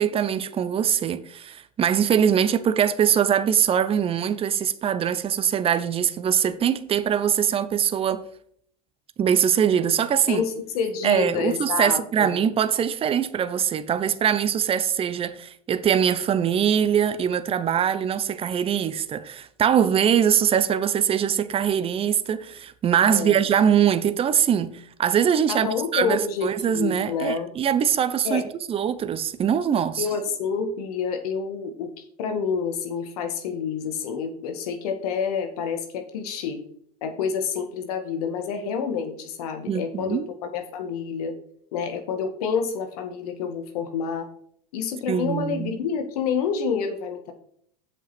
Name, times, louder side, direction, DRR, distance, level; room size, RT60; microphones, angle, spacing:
voice 1, 0.0-8.2 9.2-10.5 11.0-28.4 28.7-30.1 39.7-40.3 45.1-45.8, right 8 dB, 30° right, 0.8 m, -22 dB
voice 2, 10.3-12.4 23.0-23.4 25.5-27.5 28.2-28.4 30.0-31.9 32.2-36.6 37.0-41.3 41.7-44.3 44.7-47.3, left 6 dB, 70° left, 1.8 m, -28 dB
7.5 x 5.5 x 6.1 m
hypercardioid pair, 95°, 20 cm